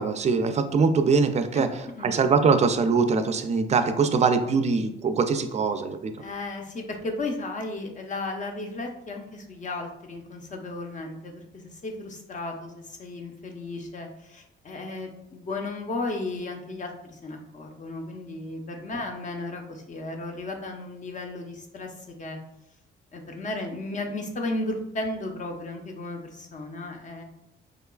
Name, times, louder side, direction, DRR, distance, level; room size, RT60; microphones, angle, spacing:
voice 1, 0.0-1.7 2.0-6.1, right 5 dB, 35° right, 8 dB, 0.4 m, -22 dB
voice 2, 2.0-2.3 6.2-22.4 23.1-27.2, left 2 dB, 40° left, 2 dB, 0.7 m, -34 dB
4.8 x 2.3 x 2.2 m, 0.83 s
cardioid pair, 90°, 20 cm